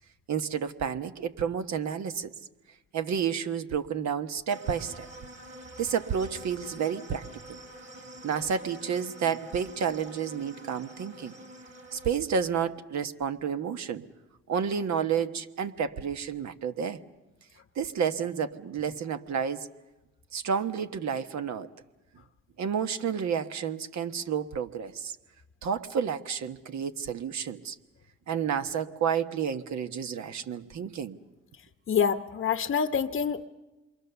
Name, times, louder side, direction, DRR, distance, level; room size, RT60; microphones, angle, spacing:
voice 1, 0.3-2.3 2.9-5.1 5.8-7.2 8.2-11.3 11.9-14.0 14.5-17.0 17.8-19.7 20.3-21.7 22.6-25.2 25.6-27.8 28.3-31.2, right 7 dB, 65° right, 8 dB, 1.3 m, -30 dB
sound 1, 4.5-12.1, right 1 dB, 40° right, 4.2 m, -47 dB
voice 2, 31.9-33.4, left 7 dB, 45° left, 7 dB, 0.9 m, -26 dB
27.5 x 23.5 x 6.9 m, 1.1 s
cardioid pair, 90°, 30 cm